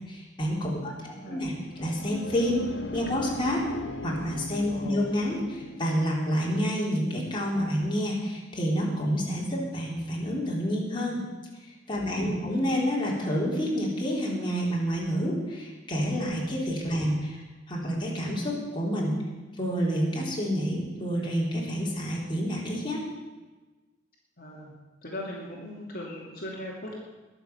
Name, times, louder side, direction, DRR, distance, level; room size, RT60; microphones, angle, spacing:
voice 1, 0.1-2.6 2.9-3.6 4.0-11.2 11.9-17.4 17.7-19.1 19.6-23.0, equal, 25° left, -4 dB, 3.9 m, -28 dB
voice 2, 0.7-1.5 4.7-5.0 12.0-12.5 16.9-17.0 24.4-24.7 25.0-27.0, left 1 dB, 50° left, -4 dB, 2.7 m, -40 dB
sound 1, 1.6-6.3, left 2 dB, 75° left, 1.2 m, -38 dB
21.5 x 7.2 x 7.2 m, 1.2 s
head